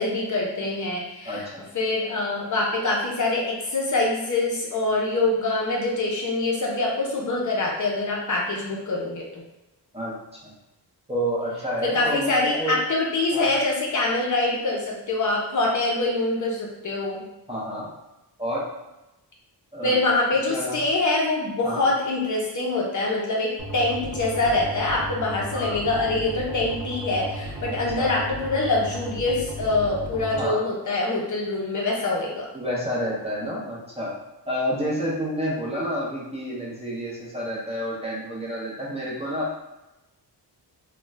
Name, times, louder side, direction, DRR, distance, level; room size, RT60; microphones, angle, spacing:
voice 1, 0.0-1.4 1.7-9.4 11.8-17.2 19.8-32.5, left 2 dB, 45° left, -2 dB, 0.6 m, -25 dB
voice 2, 1.2-1.6 9.9-10.2 10.4-10.5 11.1-12.8 13.3-13.5 17.5-17.9 18.4-18.6 19.7-20.1 20.5-20.8 21.6-21.8 25.5-25.8 27.7-28.1 30.4-30.6 32.5-34.1 34.5-39.6, equal, 15° right, -6 dB, 0.5 m, -29 dB
sound 1, 23.6-30.4, right 1 dB, 85° right, 0.7 m, -35 dB
2.4 x 2.1 x 3.2 m, 0.98 s
wide cardioid pair, 135°, 42 cm